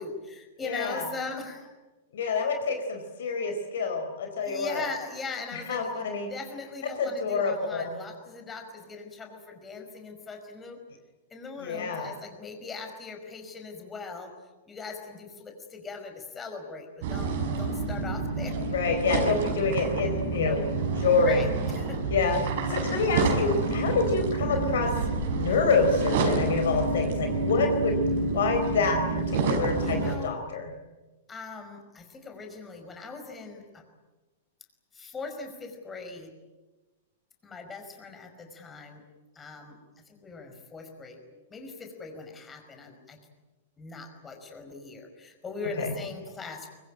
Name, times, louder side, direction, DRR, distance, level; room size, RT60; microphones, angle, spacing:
voice 1, 0.0-1.7 4.4-10.8 11.3-14.3 14.7-18.6 21.2-22.0 29.8-30.4 31.3-33.8 34.9-36.3 37.4-39.0 39.3-39.8 40.1-43.2 43.8-46.7, left 4 dB, 15° left, 4 dB, 5.2 m, -40 dB
voice 2, 0.6-1.1 2.1-4.8 5.7-6.3 7.0-7.9 11.6-12.1 18.7-20.6 21.0-21.5 22.1-22.4 22.7-24.9 25.3-27.9 28.3-30.0 30.2-30.7 45.8-45.9, left 4 dB, 60° left, 5 dB, 4.3 m, -27 dB
sound 1, 17.0-30.2, right 3 dB, 50° right, 5.2 m, -28 dB
24.5 x 23.5 x 8.9 m, 1.2 s
figure-of-eight pair, 100°, 0 cm